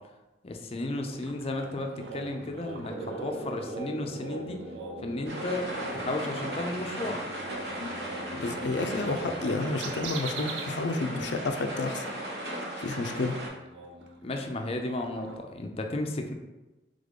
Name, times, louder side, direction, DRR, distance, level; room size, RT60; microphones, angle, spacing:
voice 1, 0.4-4.6 5.0-7.2 11.1-11.3 14.2-16.3, left 2 dB, 35° left, 4 dB, 0.5 m, -34 dB
sound 1, 1.1-10.8 11.1-11.2 11.6-15.4, right 3 dB, 85° right, 0.5 m, -43 dB
sound 2, 2.8-10.0, right 2 dB, ahead, 0.9 m, -44 dB
sound 3, 5.2-13.5, right 1 dB, 65° right, 1.1 m, -37 dB
voice 2, 8.3-12.0 12.8-13.4, left 3 dB, 90° left, 6 dB, 0.5 m, -30 dB
3.7 x 3.5 x 3.6 m, 1.1 s
head